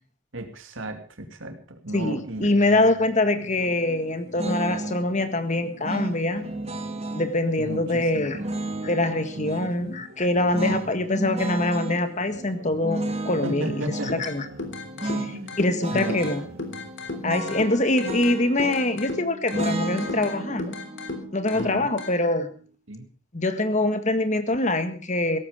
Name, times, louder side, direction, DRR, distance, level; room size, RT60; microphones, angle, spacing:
voice 1, 0.3-2.5 7.6-8.4 9.3-10.0 13.4-14.2 15.3-15.6 15.9-16.4 21.5-21.9 22.9-23.0, right 1 dB, 75° right, 6 dB, 2.6 m, -35 dB
voice 2, 1.9-6.5 7.1-8.4 8.8-13.8 14.2-14.4 15.0-16.4 17.2-20.8 21.3-22.5 23.3-25.4, left 2 dB, 35° left, 9 dB, 1.7 m, -24 dB
sound 1, 2.3-18.3, equal, 50° right, 4.0 m, -46 dB
sound 2, 4.4-5.0 5.8-7.3 8.3-9.7 10.5-12.0 12.8-14.2 15.0-15.3 15.6-16.4 17.2-19.0 19.5-22.6, right 2 dB, 30° right, 2.0 m, -32 dB
sound 3, 14.1-22.1, left 3 dB, 60° left, 3.4 m, -36 dB
17.0 x 14.5 x 5.1 m, 0.41 s
head